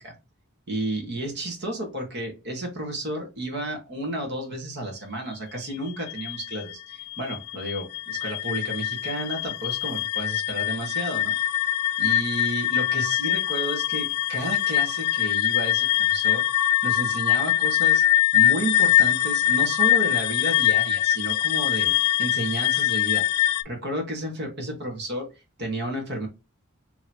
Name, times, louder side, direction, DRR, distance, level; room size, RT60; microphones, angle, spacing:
voice 1, 0.7-11.3 12.0-16.4 16.8-18.0 18.3-23.2 23.6-25.3 25.6-26.3, right 1 dB, 50° right, 1.3 m, -32 dB
sound 1, 5.7-23.6, left 13 dB, 90° left, 0.3 m, -23 dB
3.0 x 3.0 x 4.2 m
head